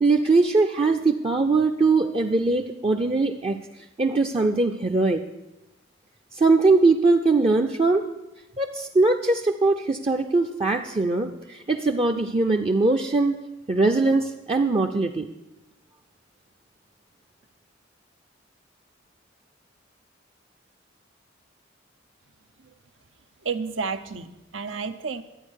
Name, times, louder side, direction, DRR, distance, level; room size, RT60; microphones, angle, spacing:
voice 1, 0.0-5.2 6.3-8.1 8.6-13.4 13.7-15.3, right 3 dB, 30° right, 3 dB, 0.5 m, -21 dB
voice 2, 23.4-25.2, right 5 dB, 85° right, 10 dB, 0.8 m, -31 dB
12.0 x 8.6 x 6.3 m, 0.98 s
head